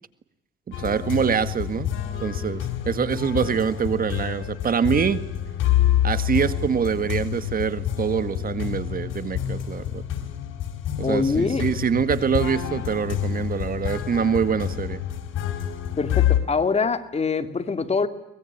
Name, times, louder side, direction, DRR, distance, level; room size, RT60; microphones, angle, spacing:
sound 1, 0.7-16.4, left 11 dB, 85° left, 4.6 m, -27 dB
voice 1, 0.7-1.9 2.2-5.2 6.0-10.0 11.0-15.0, right 7 dB, 45° right, 12 dB, 1.9 m, -25 dB
voice 2, 11.0-11.6 16.0-18.1, left 4 dB, 30° left, 9 dB, 2.6 m, -24 dB
24.5 x 21.0 x 8.8 m, 0.84 s
cardioid pair, 90°, 20 cm